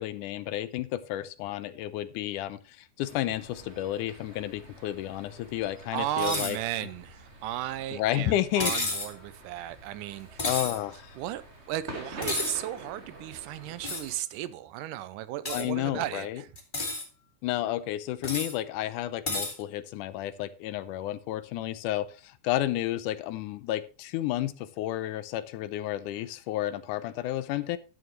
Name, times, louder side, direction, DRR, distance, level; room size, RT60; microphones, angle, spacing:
voice 1, 0.0-6.6 7.9-8.7 10.4-11.2 15.5-16.4 17.4-27.8, left 14 dB, 80° left, 2.1 m, -31 dB
sound 1, 3.0-14.2, right 1 dB, 25° right, 1.7 m, -47 dB
voice 2, 5.9-10.4 11.2-11.4 11.7-16.5, right 13 dB, 90° right, 2.3 m, -35 dB
sound 2, 6.2-6.6 8.6-9.1 10.4-10.8 12.2-12.6 13.8-14.1 15.4-15.6 16.6-17.0 18.2-18.5 19.3-19.5, left 2 dB, 20° left, 1.3 m, -31 dB
11.0 x 9.4 x 3.1 m
omnidirectional pair, 3.7 m